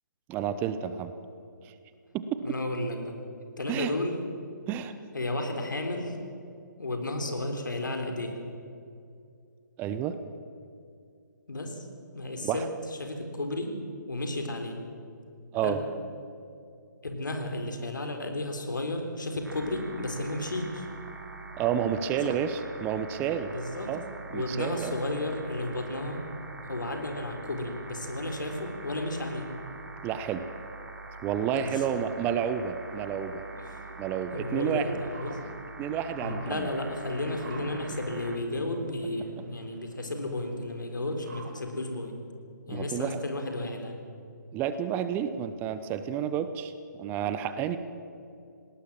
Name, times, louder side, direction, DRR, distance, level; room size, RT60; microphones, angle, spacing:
voice 1, 0.3-1.1 1.6-1.7 2.1-2.2 3.7-3.9 4.7-4.9 9.8-10.2 12.4-12.7 15.5-15.8 21.6-23.5 23.9-24.0 24.3-24.9 30.0-30.5 31.2-33.4 34.0-34.9 35.8-36.7 42.7-43.2 44.5-47.8, right 9 dB, 20° right, 11 dB, 0.8 m, -30 dB
voice 2, 2.4-3.1 3.6-4.2 5.1-6.2 6.8-8.4 11.5-11.9 12.1-12.6 13.0-13.8 14.1-14.8 15.6-15.8 17.0-20.9 23.5-23.9 24.3-26.3 26.6-29.5 31.6-31.9 33.6-33.8 34.3-35.4 36.2-42.2 42.7-44.0, left 1 dB, 75° left, 5 dB, 3.9 m, -33 dB
sound 1, 19.4-38.4, right 3 dB, 80° right, 3.5 m, -44 dB
sound 2, 32.2-42.0, right 4 dB, 45° right, 3.8 m, -50 dB
20.0 x 18.5 x 7.4 m, 2.5 s
figure-of-eight pair, 140°, 11 cm